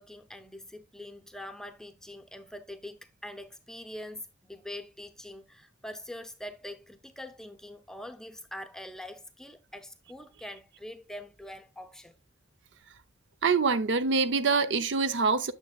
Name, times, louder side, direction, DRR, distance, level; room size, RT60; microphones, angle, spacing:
voice 1, 0.0-12.2, left 1 dB, 5° left, 0.6 m, -44 dB
voice 2, 13.4-15.5, right 4 dB, 70° right, 0.6 m, -25 dB
8.9 x 6.7 x 2.3 m
head